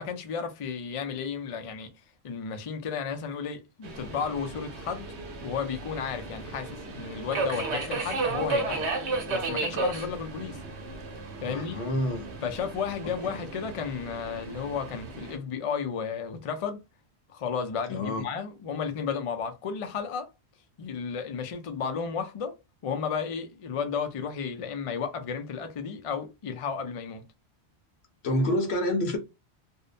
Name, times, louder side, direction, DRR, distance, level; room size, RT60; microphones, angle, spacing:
voice 1, 0.0-1.9 2.2-5.1 5.4-8.9 9.3-10.6 11.4-11.8 12.4-16.8 17.3-20.3 20.8-22.6 22.8-27.3, left 6 dB, 50° left, 0.4 m, -33 dB
Subway metro underground, 3.8-15.4, right 3 dB, 90° right, 1.0 m, -34 dB
voice 2, 11.5-12.3 13.2-13.4 17.9-18.2 28.2-29.2, left 1 dB, 75° left, 1.0 m, -28 dB
2.6 x 2.1 x 2.4 m
omnidirectional pair, 1.1 m